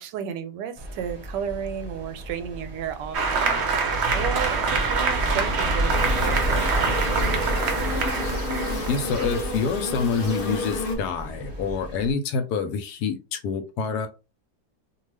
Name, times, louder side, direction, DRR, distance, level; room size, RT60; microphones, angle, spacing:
voice 1, 0.0-7.0, right 9 dB, 90° right, 1.2 m, -33 dB
sound 1, 0.8-12.1, right 1 dB, 25° right, 0.6 m, -31 dB
Applause, 3.1-10.3, right 5 dB, 60° right, 0.7 m, -26 dB
sound 2, 5.9-10.9, left 2 dB, 55° left, 0.6 m, -31 dB
voice 2, 8.9-14.1, left 5 dB, 75° left, 1.1 m, -27 dB
2.6 x 2.3 x 3.2 m
omnidirectional pair, 1.8 m